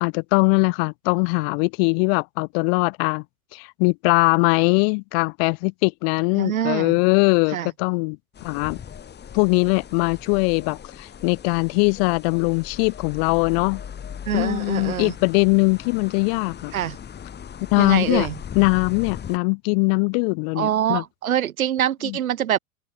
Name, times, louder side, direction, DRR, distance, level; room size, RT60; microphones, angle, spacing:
voice 1, 0.0-3.2 3.5-8.8 9.3-13.8 14.3-16.7 17.7-18.3 18.5-21.0 22.0-22.2, left 35 dB, 45° left, 0.6 m, -21 dB
voice 2, 6.4-7.0 7.5-7.7 14.3-15.1 16.7-17.0 17.8-18.4 20.6-22.6, right 10 dB, 85° right, 1.3 m, -24 dB
sound 1, 8.3-19.4, left 8 dB, 25° left, 3.2 m, -39 dB
open air
hypercardioid pair, 95°, 41 cm